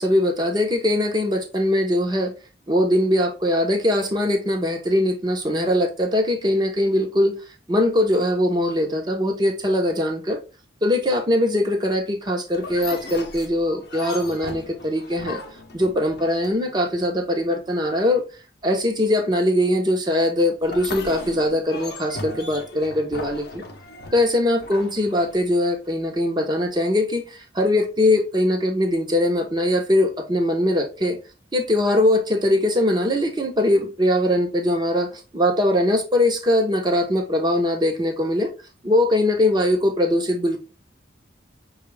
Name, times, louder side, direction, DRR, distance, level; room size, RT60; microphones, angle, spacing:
voice 1, 0.0-2.3 2.7-7.3 7.7-10.4 10.8-15.4 15.7-18.2 18.6-23.6 24.1-31.2 31.5-38.5 38.8-40.6, left 1 dB, 20° right, 0.8 m, -21 dB
sound 1, 12.5-16.8 20.6-25.7, left 2 dB, 55° left, 0.7 m, -37 dB
5.9 x 2.4 x 3.3 m
head